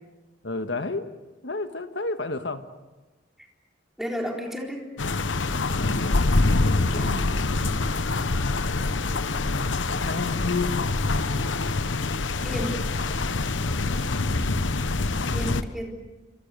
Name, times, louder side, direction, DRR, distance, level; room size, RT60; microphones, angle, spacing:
voice 1, 0.4-1.1 1.4-2.6 5.8-6.3 6.9-7.5 9.2-10.9, left 3 dB, 70° left, 9 dB, 1.6 m, -32 dB
voice 2, 4.0-4.9 6.9-7.2 12.4-12.8 15.3-16.0, equal, ahead, 0 dB, 4.0 m, -32 dB
sound 1, 5.0-15.6, left 3 dB, 85° left, 1.0 m, -25 dB
27.5 x 26.0 x 6.9 m, 1.1 s
head